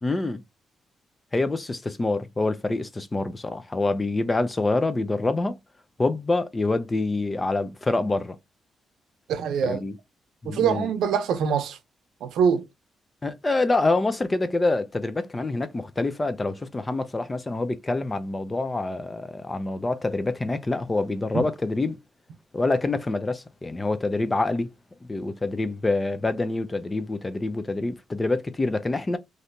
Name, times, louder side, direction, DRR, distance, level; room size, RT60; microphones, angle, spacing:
voice 1, 0.0-0.4 1.3-5.6 6.0-8.4 9.6-10.0 10.4-10.9 13.2-22.0 22.5-24.7 25.0-29.2, left 2 dB, 25° left, 0.5 m, -26 dB
voice 2, 9.3-9.8 10.5-11.8 12.2-12.6 21.3-21.4, right 7 dB, 85° right, 0.7 m, -24 dB
3.2 x 2.7 x 2.7 m
cardioid pair, 90°, 0 cm